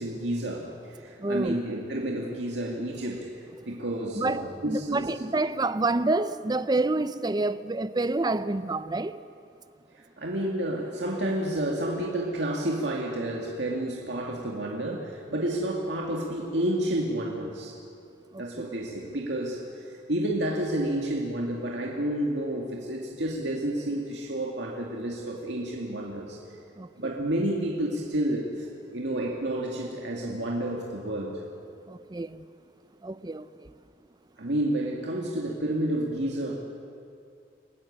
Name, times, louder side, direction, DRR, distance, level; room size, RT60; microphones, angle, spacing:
voice 1, 0.0-3.3 3.6-5.1 10.2-17.8 18.4-26.4 27.0-28.7 28.9-31.4 34.4-36.6, right 1 dB, 70° right, 2.3 m, -30 dB
voice 2, 1.2-1.6 4.1-9.2 18.3-18.6 26.8-27.1 31.9-32.4 33.0-33.7, right 2 dB, 25° right, 0.6 m, -28 dB
27.5 x 15.5 x 8.8 m
head